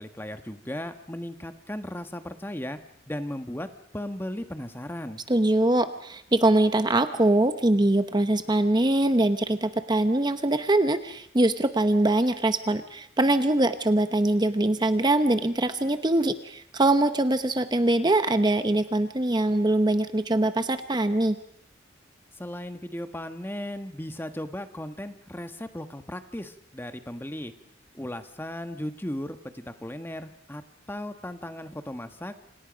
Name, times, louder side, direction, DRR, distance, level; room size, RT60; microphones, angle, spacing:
voice 1, 0.0-2.8 3.1-3.7 3.9-5.2 22.4-27.5 27.9-30.6 30.9-32.5, left 1 dB, 10° left, 8 dB, 1.3 m, -36 dB
voice 2, 5.3-21.4, right 1 dB, 25° right, 10 dB, 0.9 m, -23 dB
28.0 x 27.0 x 5.2 m, 0.71 s
head